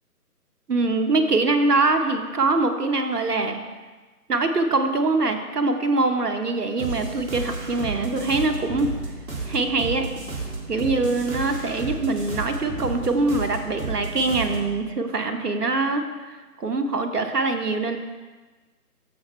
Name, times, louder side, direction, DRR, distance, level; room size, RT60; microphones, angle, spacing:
voice 1, 0.7-3.6 4.3-8.9 9.5-10.1 10.7-18.0, right 3 dB, 75° right, 6 dB, 1.2 m, -23 dB
sound 1, 6.8-14.7, right 3 dB, 55° right, 2.2 m, -32 dB
14.5 x 5.3 x 3.2 m, 1.3 s
figure-of-eight pair, 155°, 47 cm